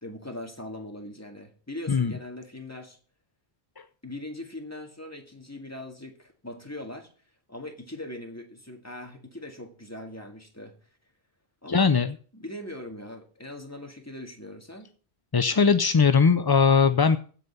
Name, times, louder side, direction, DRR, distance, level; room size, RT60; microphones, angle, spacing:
voice 1, 0.0-3.0 4.0-7.1 7.5-10.8 11.6-11.9 12.3-14.9, left 1 dB, 15° left, 2.0 m, -40 dB
voice 2, 11.7-12.1 15.3-17.2, left 5 dB, 35° left, 0.4 m, -20 dB
15.5 x 5.5 x 6.8 m
omnidirectional pair, 1.1 m